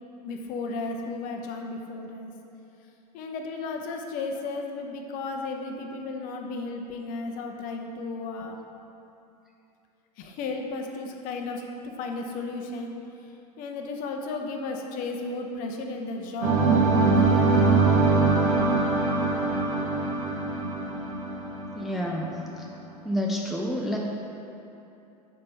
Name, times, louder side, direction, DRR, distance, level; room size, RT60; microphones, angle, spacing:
voice 1, 0.2-2.3 3.1-8.6 10.2-12.9 13.6-18.5, left 3 dB, 40° left, 2 dB, 0.7 m, -34 dB
sound 1, 16.4-22.3, right 3 dB, 55° right, 1.1 m, -23 dB
voice 2, 21.7-22.7 23.0-24.0, equal, ahead, -1 dB, 0.4 m, -29 dB
5.2 x 4.4 x 5.3 m, 2.8 s
figure-of-eight pair, 90°, 21 cm